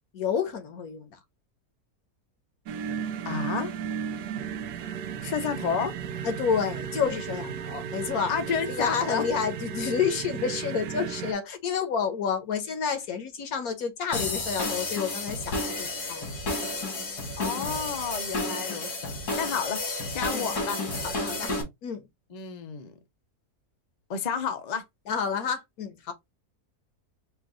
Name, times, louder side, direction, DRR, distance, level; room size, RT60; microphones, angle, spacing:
voice 1, 0.1-1.2 6.2-8.4 8.7-16.3 20.3-20.5 21.0-21.5 21.8-22.1 25.1-26.1, left 6 dB, 70° left, 1.4 m, -29 dB
sound 1, 2.7-11.3, right 7 dB, 85° right, 1.1 m, -34 dB
voice 2, 3.2-3.7 5.2-5.9 8.3-9.2 17.4-19.8 20.1-20.8 22.3-22.9 24.1-24.8, left 6 dB, 40° left, 0.6 m, -31 dB
sound 2, 14.1-21.6, left 2 dB, 85° left, 2.4 m, -31 dB
4.5 x 2.5 x 3.7 m
omnidirectional pair, 1.6 m